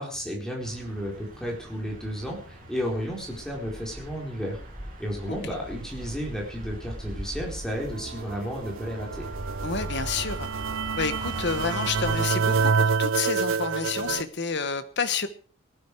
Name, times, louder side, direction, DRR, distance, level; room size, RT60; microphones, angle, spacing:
voice 1, 0.0-4.6 5.0-9.3, equal, 5° left, -2 dB, 4.3 m, -33 dB
sound 1, 0.6-12.3, equal, 40° right, 6.3 m, -40 dB
sound 2, 7.7-14.2, right 5 dB, 75° right, 0.6 m, -28 dB
voice 2, 9.6-10.5 11.0-15.3, left 5 dB, 55° left, 11 dB, 1.4 m, -29 dB
18.5 x 12.0 x 4.8 m, 0.41 s
head